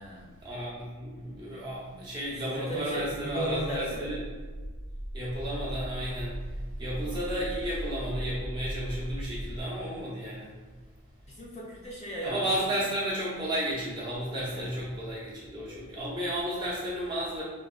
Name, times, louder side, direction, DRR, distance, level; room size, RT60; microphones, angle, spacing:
voice 1, 0.4-4.2 5.1-6.4 6.8-10.6 12.2-17.4, right 1 dB, 20° right, -8 dB, 0.8 m, -33 dB
voice 2, 2.4-4.1 6.9-7.4 11.3-12.5 14.5-14.8, equal, 30° left, -5 dB, 0.4 m, -36 dB
sound 1, 2.9-9.6, equal, 75° right, 0.9 m, -38 dB
4.6 x 2.2 x 2.3 m, 1.4 s
head